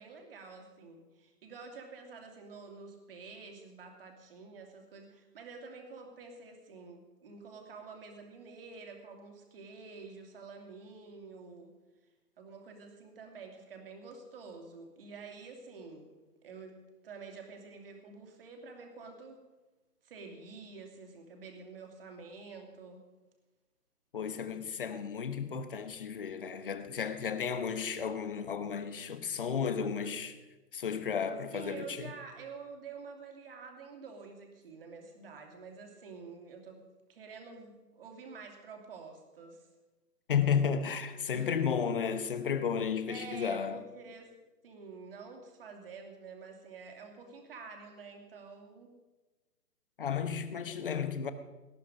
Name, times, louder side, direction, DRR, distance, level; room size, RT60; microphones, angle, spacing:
voice 1, 0.0-11.7 12.4-16.1 16.4-16.8 17.0-19.4 20.0-23.0 31.5-36.8 37.1-39.7 41.3-41.6 43.1-44.3 44.6-48.9 50.7-50.9, right 4 dB, 35° right, 2.8 m, -48 dB
voice 2, 24.1-30.3 30.7-32.1 40.3-43.8 50.0-51.3, left 7 dB, 35° left, 1.0 m, -33 dB
19.0 x 12.5 x 5.3 m
hypercardioid pair, 155°, 48 cm